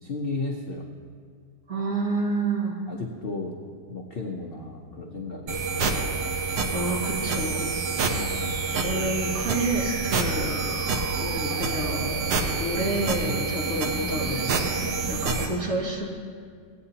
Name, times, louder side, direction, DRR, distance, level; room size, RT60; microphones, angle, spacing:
voice 1, 0.0-0.9 2.9-3.6 3.9-5.6 8.1-8.6 14.8-15.1, left 3 dB, 55° left, -1 dB, 0.6 m, -34 dB
voice 2, 1.7-2.8 6.7-7.8 8.7-12.2 12.6-16.0, right 2 dB, 45° right, -4 dB, 2.2 m, -29 dB
sound 1, 5.5-15.5, right 4 dB, 85° right, 1.6 m, -27 dB
17.0 x 9.1 x 2.8 m, 2.1 s
omnidirectional pair, 1.9 m